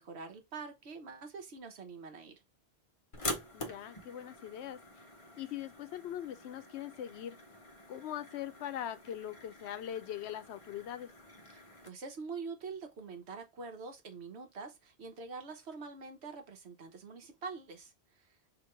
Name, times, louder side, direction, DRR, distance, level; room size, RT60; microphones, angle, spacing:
voice 1, 0.0-2.4 11.5-18.4, right 4 dB, 75° right, 1.2 m, -45 dB
sound 1, 3.1-11.9, left 2 dB, 35° left, 0.7 m, -46 dB
voice 2, 3.5-5.0 5.4-7.4 7.9-11.1, left 11 dB, 80° left, 0.8 m, -41 dB
3.0 x 2.8 x 4.4 m
omnidirectional pair, 1.1 m